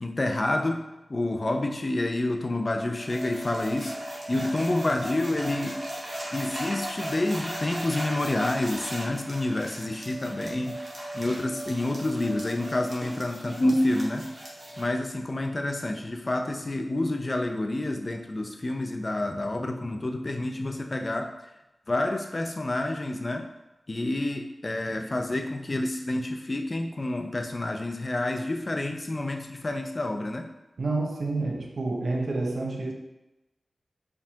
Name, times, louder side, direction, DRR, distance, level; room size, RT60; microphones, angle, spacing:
voice 1, 0.0-5.8 6.3-10.8 11.1-14.4 14.8-21.3 21.9-23.5 23.9-30.5, left 1 dB, 40° left, 4 dB, 0.5 m, -28 dB
sound 1, 3.0-14.8, right 1 dB, 40° right, 1.1 m, -37 dB
voice 2, 30.8-32.9, right 2 dB, 70° right, 1 dB, 0.6 m, -29 dB
4.6 x 3.5 x 2.7 m, 0.99 s
wide cardioid pair, 90°, 0 cm